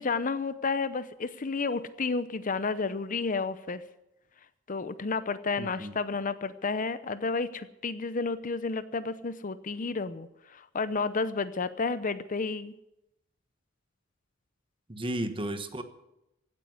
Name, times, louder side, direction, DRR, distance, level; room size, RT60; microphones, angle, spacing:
voice 1, 0.0-3.8 4.7-12.7, left 4 dB, 40° left, 14 dB, 0.7 m, -31 dB
voice 2, 5.6-5.9 14.9-15.8, right 1 dB, 25° right, 9 dB, 1.2 m, -33 dB
16.5 x 9.1 x 9.4 m, 0.88 s
head